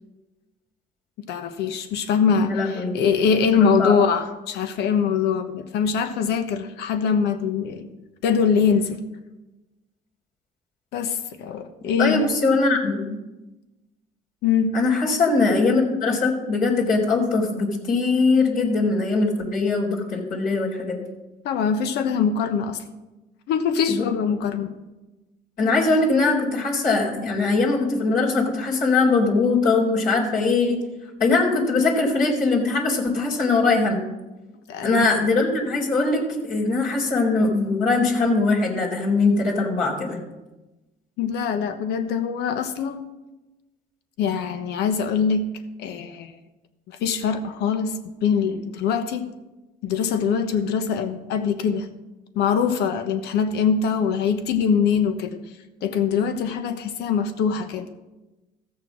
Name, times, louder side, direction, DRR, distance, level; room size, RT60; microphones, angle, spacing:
voice 1, 1.3-7.9 8.2-9.0 10.9-12.3 14.4-14.7 21.4-22.8 23.5-24.8 34.7-35.0 41.2-43.1 44.2-45.5 45.8-46.4 46.9-49.3 49.8-51.9 52.3-55.4 55.8-57.9, left 6 dB, 80° left, 9 dB, 1.1 m, -23 dB
voice 2, 2.4-3.0 3.8-4.0 12.0-13.2 14.7-21.0 23.9-24.0 25.6-30.8 31.2-34.0 34.8-40.2, left 3 dB, 60° left, -5 dB, 3.9 m, -21 dB
15.0 x 6.7 x 6.2 m, 1.1 s
cardioid pair, 110°, 17 cm